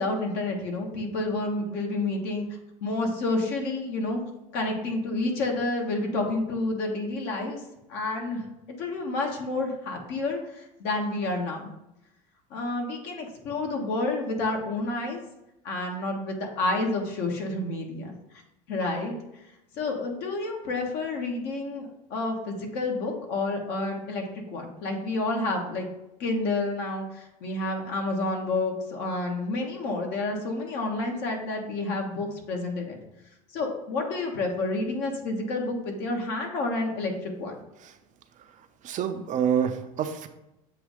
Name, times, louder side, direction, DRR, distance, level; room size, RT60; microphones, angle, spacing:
voice 1, 0.0-2.5 2.8-4.2 4.5-7.6 7.9-11.7 12.5-15.2 15.6-18.2 18.7-19.2 19.7-25.9 26.2-33.0 33.5-37.6, left 2 dB, 60° left, 2 dB, 1.3 m, -29 dB
voice 2, 38.8-40.3, right 8 dB, 40° right, 8 dB, 0.6 m, -27 dB
7.4 x 2.7 x 4.9 m, 0.91 s
hypercardioid pair, 85°, 19 cm